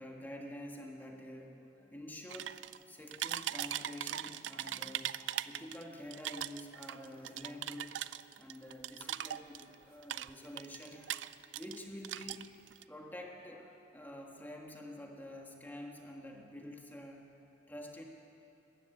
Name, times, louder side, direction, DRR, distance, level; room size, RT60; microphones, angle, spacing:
voice 1, 0.0-2.6 2.9-8.0 8.4-11.2 11.5-12.4 12.9-17.3 17.7-18.0, left 1 dB, 10° left, 0 dB, 1.7 m, -48 dB
sound 1, 2.3-2.8 3.1-5.8 6.1-9.7 10.0-11.8 12.0-12.8, right 11 dB, 85° right, 0.5 m, -40 dB
20.5 x 14.5 x 9.2 m, 3.0 s
head